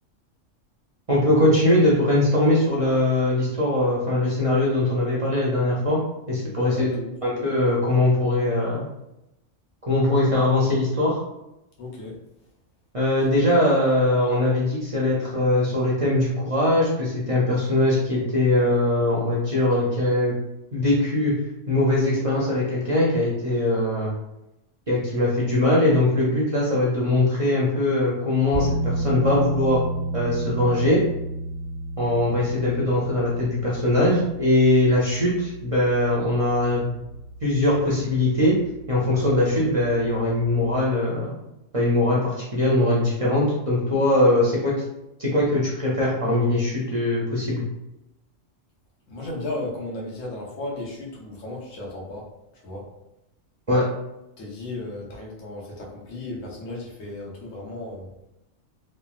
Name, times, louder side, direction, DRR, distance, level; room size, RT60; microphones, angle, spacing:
voice 1, 1.1-6.0 6.3-6.9 7.2-8.9 9.9-11.2 12.9-20.3 20.7-21.3 21.7-24.1 24.9-29.8 30.1-31.0 32.0-36.9 37.4-38.5 38.9-41.4 41.7-44.7 45.2-47.6 53.7-53.8, left 1 dB, 45° right, -6 dB, 0.4 m, -21 dB
voice 2, 6.6-7.1 11.8-12.1 49.1-52.3 52.6-52.9 54.4-58.1, left 2 dB, 90° left, -2 dB, 1.2 m, -34 dB
sound 1, 28.5-40.8, right 2 dB, 40° left, 1.2 m, -33 dB
3.1 x 2.2 x 2.3 m, 0.90 s
omnidirectional pair, 1.3 m